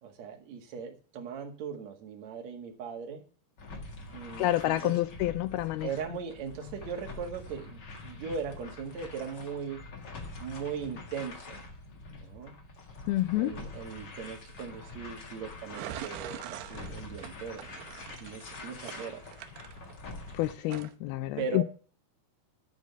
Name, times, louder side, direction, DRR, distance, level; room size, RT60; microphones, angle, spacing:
voice 1, 0.0-3.2 4.1-5.0 5.8-9.8 10.4-11.6 12.1-12.5 13.3-17.7 18.2-19.3 21.4-21.6, right 6 dB, 50° right, 2.6 m, -39 dB
sound 1, 3.6-20.5, left 3 dB, 55° left, 1.2 m, -45 dB
voice 2, 4.4-5.9 13.1-13.5 20.4-21.6, left 16 dB, 80° left, 2.3 m, -28 dB
sound 2, 15.7-20.3 20.7-20.9, right 12 dB, 75° right, 2.7 m, -43 dB
12.0 x 5.0 x 6.8 m
omnidirectional pair, 4.9 m